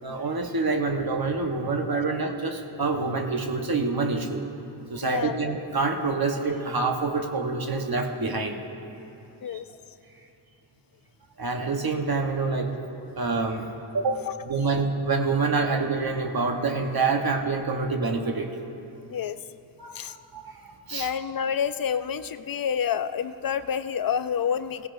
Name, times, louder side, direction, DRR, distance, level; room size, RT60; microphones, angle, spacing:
voice 1, 0.0-4.4 4.9-8.6 9.5-9.6 11.4-12.8 13.2-13.7 13.9-18.5 19.8-21.1, right 3 dB, 50° right, 3 dB, 1.2 m, -27 dB
voice 2, 5.0-5.4 9.4-9.6 14.2-14.3 19.1-19.4 19.9-20.1 20.9-24.9, left 8 dB, 50° left, 12 dB, 0.5 m, -28 dB
16.5 x 16.5 x 2.6 m, 2.8 s
cardioid pair, 50°, 47 cm